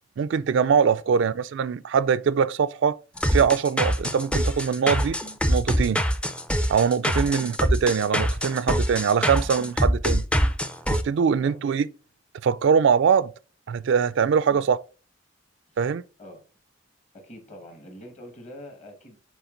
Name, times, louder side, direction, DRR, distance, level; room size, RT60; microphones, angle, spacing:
voice 1, 0.2-3.0 3.3-5.2 5.5-6.0 6.7-10.2 10.9-11.9 12.4-13.3 13.7-14.8 15.8-16.0, right 6 dB, 65° right, 0.3 m, -22 dB
sound 1, 3.2-11.0, equal, 5° left, 0.4 m, -24 dB
voice 2, 17.1-19.2, left 1 dB, 35° left, 1.6 m, -44 dB
7.1 x 3.7 x 3.8 m
head